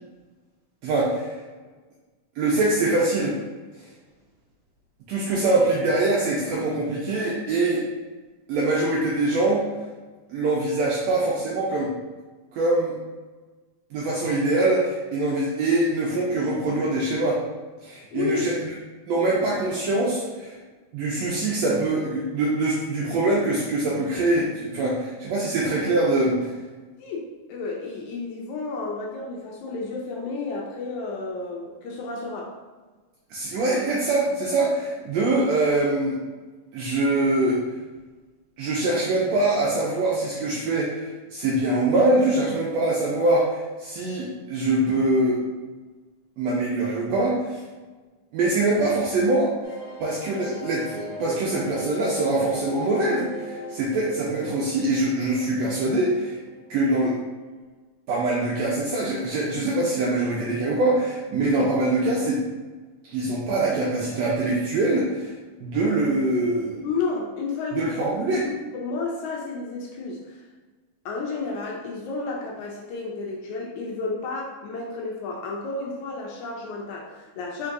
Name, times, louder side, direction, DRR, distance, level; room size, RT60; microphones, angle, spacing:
voice 1, 0.8-1.4 2.4-3.3 5.1-7.8 8.5-9.6 10.3-11.9 12.5-12.9 13.9-17.4 17.8-18.7 19.1-20.6 20.9-26.5 33.3-36.2 36.7-37.6 38.6-45.4 46.4-47.6 48.3-49.5 50.0-56.4 56.7-57.1 58.1-62.4 63.1-65.3 65.6-66.9 67.7-68.5, right 2 dB, 80° right, -5 dB, 1.5 m, -23 dB
voice 2, 18.1-18.5 27.0-32.5 66.8-68.0 68.3-70.4 71.1-77.7, left 3 dB, 75° left, -2 dB, 1.9 m, -31 dB
sound 1, 49.6-57.1 57.4-57.5 57.7-57.8, equal, 55° left, 1.8 m, -38 dB
4.5 x 3.9 x 2.5 m, 1.3 s
omnidirectional pair, 3.6 m